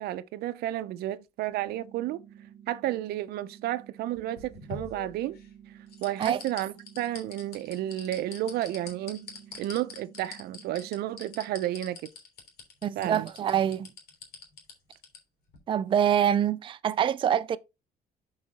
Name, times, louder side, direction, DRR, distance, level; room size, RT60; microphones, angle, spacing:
voice 1, 0.0-2.2 2.7-5.4 6.0-9.3 9.6-12.0 13.0-13.3, right 13 dB, 85° right, 0.6 m, -32 dB
sound 1, 1.5-11.5, right 9 dB, 50° right, 1.3 m, -52 dB
sound 2, 4.2-5.5 5.9-15.2 15.5-15.6, left 5 dB, 80° left, 3.3 m, -44 dB
voice 2, 12.8-13.9 15.7-17.6, right 9 dB, 30° right, 0.4 m, -25 dB
7.3 x 4.8 x 4.1 m
cardioid pair, 140°, 16 cm